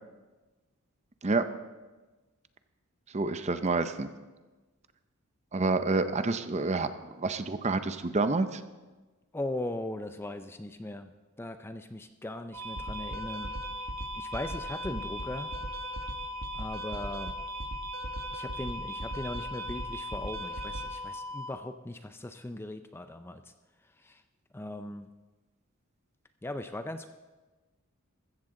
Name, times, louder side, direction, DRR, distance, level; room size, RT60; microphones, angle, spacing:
voice 1, 3.1-4.1 5.5-6.9 7.2-8.6, right 3 dB, 30° right, 10 dB, 0.6 m, -28 dB
voice 2, 9.3-11.1 11.4-13.5 14.2-15.5 16.5-17.4 18.3-23.5 23.8-24.2 24.5-25.1 26.4-27.1, left 1 dB, 10° left, 9 dB, 0.4 m, -39 dB
sound 1, 12.5-21.5, equal, 65° right, 1.3 m, -37 dB
14.5 x 14.0 x 3.8 m, 1.2 s
head